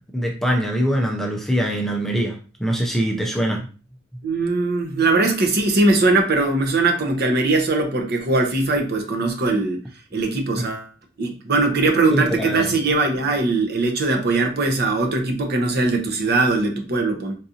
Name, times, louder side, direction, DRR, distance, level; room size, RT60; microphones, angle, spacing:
voice 1, 0.1-3.7 12.1-12.7, equal, ahead, 0 dB, 0.5 m, -23 dB
voice 2, 4.2-9.8 10.1-10.9 11.2-17.4, right 3 dB, 55° right, 3 dB, 0.7 m, -20 dB
3.9 x 2.5 x 2.7 m, 0.36 s
head